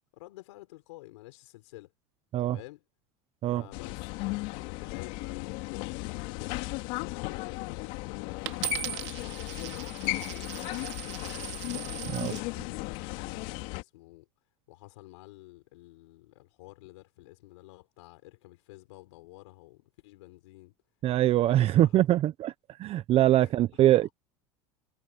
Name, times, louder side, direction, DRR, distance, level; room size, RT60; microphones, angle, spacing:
voice 1, 0.1-1.9 2.5-2.8 3.5-6.6 7.1-11.6 12.1-14.3 14.7-20.7 21.4-22.0 23.4-24.1, left 19 dB, 80° left, 4.1 m, -50 dB
sound 1, 3.7-13.8, left 22 dB, 65° left, 2.5 m, -36 dB
Coin (dropping), 8.5-12.5 13.2-13.6, right 17 dB, 85° right, 3.1 m, -39 dB
voice 2, 12.1-12.4 21.0-22.5 22.8-24.1, right 13 dB, 40° right, 0.9 m, -23 dB
supercardioid pair, 115°, 15 cm